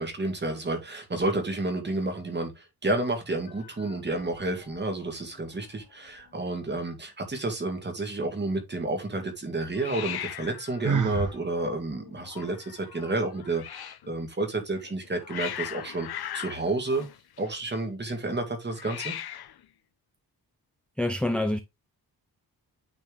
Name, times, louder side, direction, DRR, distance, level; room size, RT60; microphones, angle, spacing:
voice 1, 0.0-16.1 16.3-17.1 17.4-19.2, right 2 dB, 30° right, 2.2 m, -30 dB
Hiss, 3.5-4.8 5.1-5.5 5.8-5.9 6.1-6.8 9.8-14.1 14.8-17.8 18.7-19.7, left 11 dB, 75° left, 0.7 m, -40 dB
Sigh, 10.8-11.3, right 6 dB, 55° right, 1.0 m, -26 dB
voice 2, 21.0-21.6, left 1 dB, 5° left, 0.5 m, -26 dB
9.1 x 4.4 x 3.5 m
wide cardioid pair, 165°, 38 cm